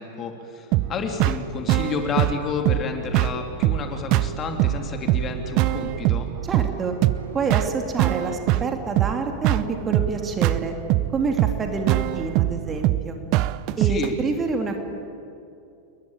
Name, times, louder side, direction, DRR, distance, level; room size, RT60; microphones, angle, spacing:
voice 1, 0.0-6.3 13.8-14.1, left 5 dB, 25° left, 4 dB, 3.4 m, -30 dB
sound 1, 0.6-8.1, right 2 dB, 90° left, 6.6 m, -45 dB
sound 2, 0.7-14.1, right 16 dB, 40° right, 0.8 m, -23 dB
voice 2, 6.4-6.9 7.3-10.7 11.1-13.2 13.8-14.8, right 4 dB, 20° right, 4 dB, 3.3 m, -27 dB
29.0 x 22.5 x 9.1 m, 2.6 s
figure-of-eight pair, 90°, 0 cm